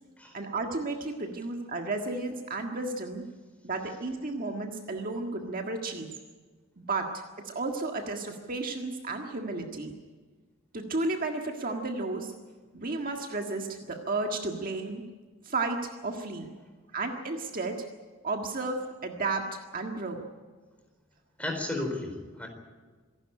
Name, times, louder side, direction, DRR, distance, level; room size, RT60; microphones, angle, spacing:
voice 1, 0.3-3.2 3.6-6.1 6.8-9.9 10.7-12.3 12.7-15.0 15.4-16.5 16.9-17.8 18.2-20.2, right 3 dB, 45° right, 3 dB, 1.7 m, -33 dB
voice 2, 21.4-22.5, left 2 dB, 5° left, 3 dB, 4.3 m, -33 dB
26.5 x 11.5 x 9.9 m, 1.4 s
head